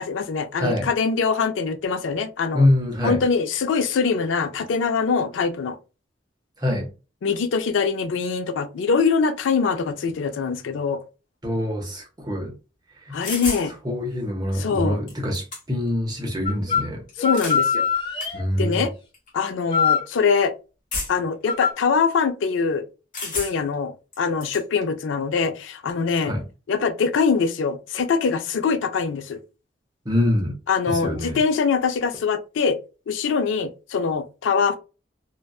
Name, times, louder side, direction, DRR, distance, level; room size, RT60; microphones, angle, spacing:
voice 1, 0.0-2.7 3.0-5.8 7.2-11.0 13.1-13.7 14.5-15.0 17.2-17.9 18.6-18.9 19.3-20.5 21.1-22.9 23.2-26.3 26.7-29.4 30.7-32.8 33.1-34.8, left 5 dB, 90° left, 0.4 m, -23 dB
voice 2, 0.5-0.9 2.5-3.2 6.6-6.9 11.4-12.6 13.1-13.2 13.8-17.0 18.3-18.9 26.2-26.4 30.1-30.6 30.9-31.4, left 1 dB, 20° right, 0.6 m, -24 dB
sound 1, 13.2-13.7 14.7-14.8 15.1-15.9 17.1-17.6 18.2-18.3 19.1-19.3 20.9-21.3 23.1-23.7 24.1-24.6, left 2 dB, 45° left, 1.0 m, -31 dB
sound 2, 16.5-16.9 17.2-18.4 19.7-20.1 21.5-21.7, left 6 dB, 25° left, 0.5 m, -22 dB
2.6 x 2.2 x 2.3 m
head